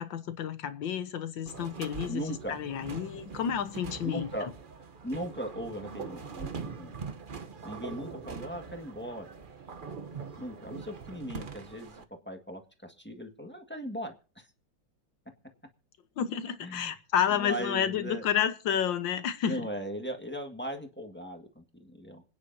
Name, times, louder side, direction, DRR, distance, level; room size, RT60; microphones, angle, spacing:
voice 1, 0.0-2.2 2.5-4.3 16.2-19.7, left 9 dB, 75° left, 1.8 m, -30 dB
sound 1, 1.5-12.0, right 5 dB, 40° right, 0.7 m, -42 dB
voice 2, 2.1-2.6 4.1-4.5 5.0-6.9 7.6-9.3 10.4-14.5 16.6-16.9 17.3-18.3 19.4-22.2, equal, 5° left, 1.5 m, -38 dB
26.5 x 9.9 x 2.7 m
omnidirectional pair, 2.1 m